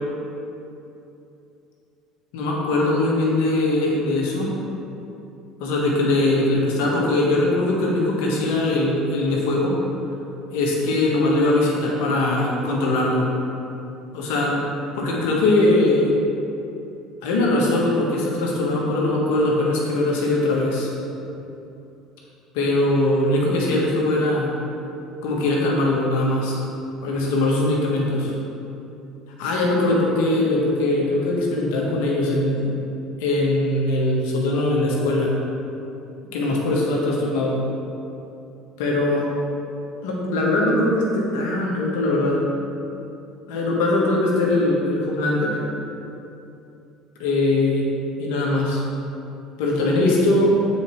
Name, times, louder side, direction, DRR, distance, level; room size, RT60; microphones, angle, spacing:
voice 1, 2.3-4.5 5.6-9.7 10.5-13.3 14.1-14.6 14.9-16.1 17.2-20.9 22.5-24.5 25.2-26.6 27.0-28.3 29.4-32.7 33.2-35.3 36.3-37.6 38.8-39.3 40.0-42.4 43.5-45.6 47.2-47.8 48.2-48.8 49.6-50.6, left 2 dB, 80° left, -3 dB, 1.4 m, -21 dB
7.8 x 4.4 x 4.5 m, 2.8 s
supercardioid pair, 85°, 0 cm